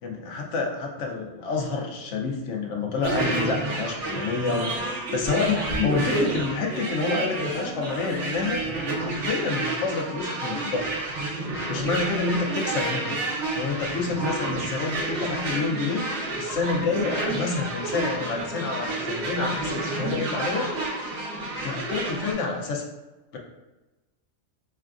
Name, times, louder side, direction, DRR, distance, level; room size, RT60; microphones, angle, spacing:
voice 1, 0.0-8.6 9.0-10.9 11.7-13.2 13.5-16.0 16.4-20.7 21.6-22.8 23.3-23.4, left 4 dB, 85° left, 1 dB, 1.0 m, -28 dB
sound 1, 3.0-22.3, right 2 dB, 80° right, 1.1 m, -30 dB
5.5 x 2.3 x 2.4 m, 1.1 s
omnidirectional pair, 1.2 m